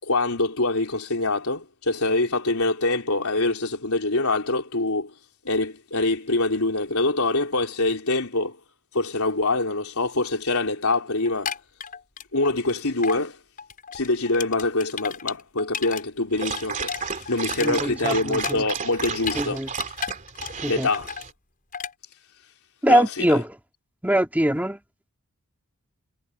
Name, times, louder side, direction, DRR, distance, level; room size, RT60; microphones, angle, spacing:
voice 1, 0.0-5.1 5.4-8.6 8.9-11.5 12.3-13.4 13.9-19.6 20.7-21.1 22.9-23.4, left 2 dB, 70° left, 4.3 m, -25 dB
sound 1, 11.3-12.7 13.0-13.2 13.6-16.0 16.3-19.4 19.7-20.7 20.9-21.3 21.7-21.9, left 7 dB, 40° left, 7.2 m, -33 dB
Dog, 16.3-21.3, right 6 dB, 35° right, 3.0 m, -33 dB
voice 2, 17.6-18.6 19.3-19.7 20.6-20.9 22.8-23.4 24.0-24.8, right 1 dB, 5° right, 2.5 m, -22 dB
head